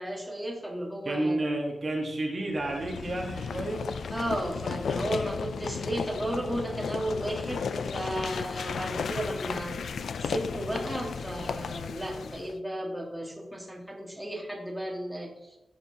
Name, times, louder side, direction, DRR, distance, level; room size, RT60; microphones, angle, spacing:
voice 1, 0.0-1.4 4.1-15.6, right 1 dB, 5° right, -2 dB, 1.6 m, -34 dB
voice 2, 1.0-3.9, right 1 dB, 35° right, 0 dB, 1.4 m, -30 dB
sound 1, 2.6-12.5, left 6 dB, 80° left, 0.4 m, -34 dB
14.0 x 6.9 x 2.9 m, 0.96 s
wide cardioid pair, 165°, 0 cm